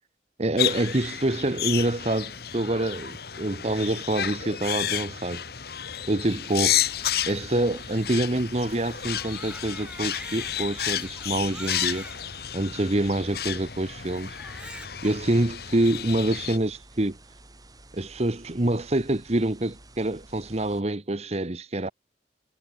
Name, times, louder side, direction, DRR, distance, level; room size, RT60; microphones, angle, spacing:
voice 1, 0.4-5.4 6.1-6.8 7.3-12.1 12.5-14.3 15.0-17.2 17.9-21.9, right 1 dB, 35° right, 1.1 m, -26 dB
sound 1, 0.6-16.6, left 11 dB, 60° left, 1.4 m, -31 dB
sound 2, 6.7-20.8, right 2 dB, 20° right, 2.8 m, -51 dB
Crying sobbing, 9.1-12.2 12.9-13.0 14.3-15.2, right 1 dB, 5° right, 6.7 m, -43 dB
head